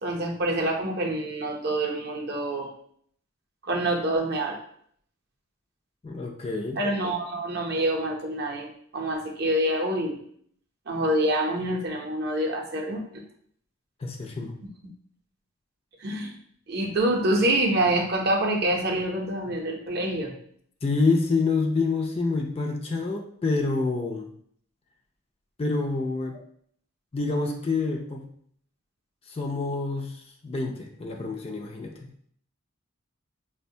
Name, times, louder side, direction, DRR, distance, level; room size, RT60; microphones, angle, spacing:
voice 1, 0.0-2.7 3.6-4.6 6.8-10.2 10.9-13.0 16.0-16.3 16.7-20.4, right 1 dB, 50° right, 1 dB, 0.6 m, -26 dB
voice 2, 6.0-6.8 14.0-14.6 20.8-24.3 25.6-26.4 27.1-28.3 29.3-32.1, left 3 dB, 30° left, 3 dB, 0.3 m, -27 dB
5.1 x 2.1 x 2.6 m, 0.63 s
head